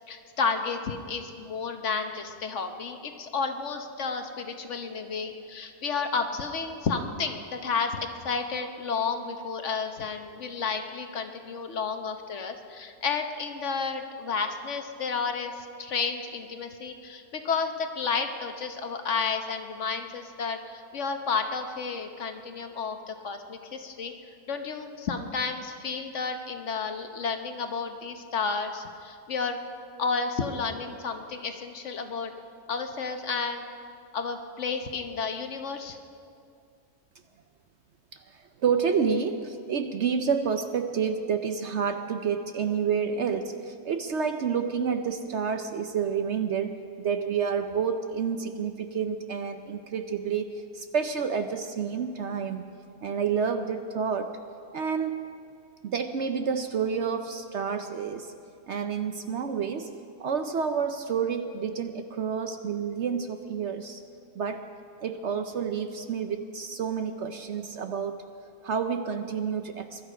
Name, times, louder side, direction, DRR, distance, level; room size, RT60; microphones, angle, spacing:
voice 1, 0.1-24.1 24.5-29.6 30.0-32.3 32.7-33.6 34.1-36.0, left 5 dB, 55° left, 6 dB, 1.2 m, -31 dB
voice 2, 38.1-52.6 53.0-54.4 54.7-55.3 55.8-58.3 58.7-64.0 64.3-64.7 65.0-68.3 68.6-70.0, right 6 dB, 60° right, 8 dB, 0.8 m, -29 dB
22.5 x 12.5 x 5.0 m, 2.4 s
omnidirectional pair, 1.6 m